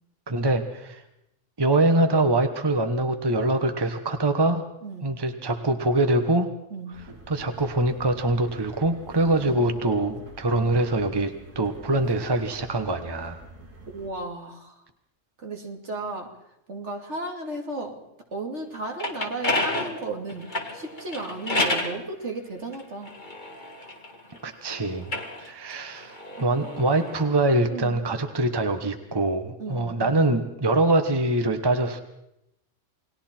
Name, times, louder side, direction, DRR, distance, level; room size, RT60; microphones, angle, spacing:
voice 1, 0.3-1.0 1.6-4.6 5.0-6.5 7.3-13.4 24.4-25.1 25.4-32.0, right 2 dB, 20° right, 7 dB, 1.2 m, -24 dB
sound 1, 6.9-14.1, right 3 dB, 80° right, 3.0 m, -47 dB
voice 2, 9.4-10.2 10.5-10.9 13.9-14.7 15.4-16.3 16.7-18.0 18.3-23.1 26.4-26.8 27.7-28.0 29.6-30.2, right 2 dB, 60° right, 2 dB, 3.0 m, -35 dB
sound 2, 18.7-22.0 22.7-24.4 24.9-27.3, left 2 dB, 35° left, 2.3 m, -30 dB
29.0 x 20.0 x 4.5 m, 0.83 s
omnidirectional pair, 1.3 m